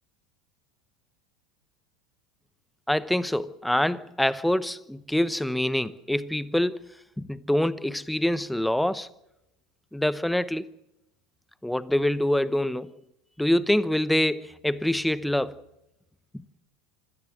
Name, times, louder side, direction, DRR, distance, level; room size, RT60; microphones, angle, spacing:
voice 1, 2.9-6.9 7.2-9.1 9.9-10.7 11.6-13.0 13.4-15.6 16.3-16.4, left 1 dB, 5° left, 0.9 m, -25 dB
26.5 x 17.0 x 6.5 m
hypercardioid pair, 80°, 0 cm